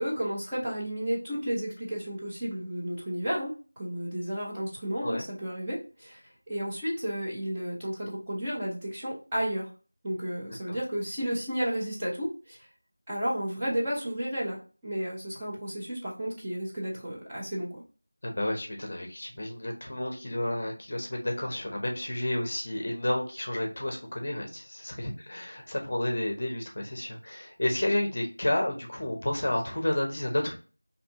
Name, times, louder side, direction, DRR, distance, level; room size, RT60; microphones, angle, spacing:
voice 1, 0.0-3.5 3.8-6.2 6.5-9.7 10.0-12.7 13.1-17.8, equal, 10° right, -10 dB, 0.7 m, -32 dB
voice 2, 18.2-30.5, left 1 dB, 35° left, 1 dB, 0.7 m, -31 dB
3.4 x 2.7 x 2.6 m, 0.35 s
figure-of-eight pair, 175°, 0 cm